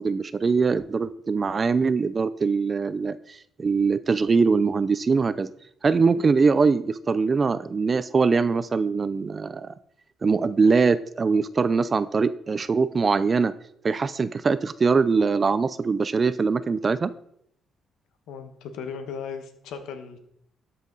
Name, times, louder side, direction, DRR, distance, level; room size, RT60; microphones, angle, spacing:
voice 1, 0.0-5.5 5.8-9.7 10.2-13.5 13.8-17.1, right 4 dB, 35° right, 15 dB, 0.5 m, -22 dB
voice 2, 18.3-20.2, left 6 dB, 85° left, 8 dB, 1.2 m, -36 dB
12.5 x 5.7 x 4.0 m, 0.70 s
cardioid pair, 90°, 0 cm